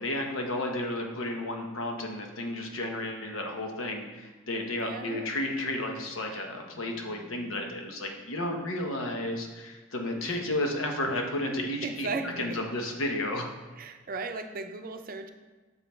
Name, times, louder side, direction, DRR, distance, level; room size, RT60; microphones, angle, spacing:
voice 1, 0.0-12.1 12.4-13.5, left 1 dB, 90° left, 2 dB, 1.0 m, -32 dB
voice 2, 4.8-5.3 10.2-10.3 11.8-12.6 13.8-15.3, right 4 dB, 45° right, 6 dB, 0.6 m, -36 dB
sound 1, 5.9-8.0 11.0-12.5, left 5 dB, 45° left, 1.8 m, -53 dB
6.3 x 5.3 x 4.4 m, 1.3 s
head